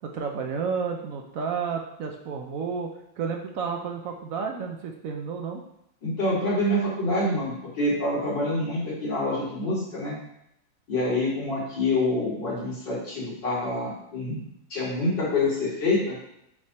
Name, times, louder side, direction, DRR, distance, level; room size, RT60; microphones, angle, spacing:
voice 1, 0.0-5.6, right 5 dB, 65° right, 3 dB, 0.8 m, -31 dB
voice 2, 6.0-10.1 10.9-14.4 14.7-16.2, left 2 dB, 60° left, -9 dB, 3.7 m, -26 dB
8.3 x 3.5 x 4.2 m, 0.78 s
omnidirectional pair, 2.2 m